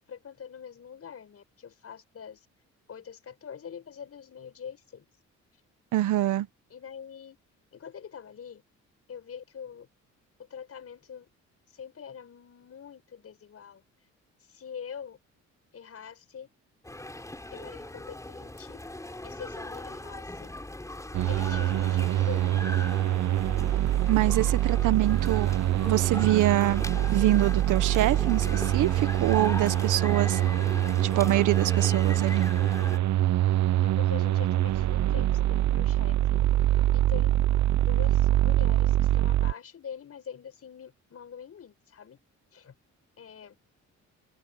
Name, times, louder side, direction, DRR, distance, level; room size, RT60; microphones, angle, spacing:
voice 1, 0.1-2.5 2.9-5.0 6.7-7.4 7.7-8.6 9.1-9.9 10.4-11.3 11.7-13.8 14.4-15.2 15.7-16.5 17.5-18.8 19.2-20.5 21.3-22.9 33.8-36.4 36.9-37.4 37.8-42.2 42.5-42.7 43.2-43.6, left 7 dB, 50° left, 6.0 m, -44 dB
voice 2, 5.9-6.5 24.1-25.5 25.9-26.8 27.1-30.4 31.0-32.5, right 14 dB, 85° right, 1.4 m, -25 dB
sound 1, 16.8-33.0, left 1 dB, 10° left, 5.1 m, -39 dB
sound 2, 21.1-39.5, right 13 dB, 65° right, 0.9 m, -25 dB
cardioid pair, 90°, 30 cm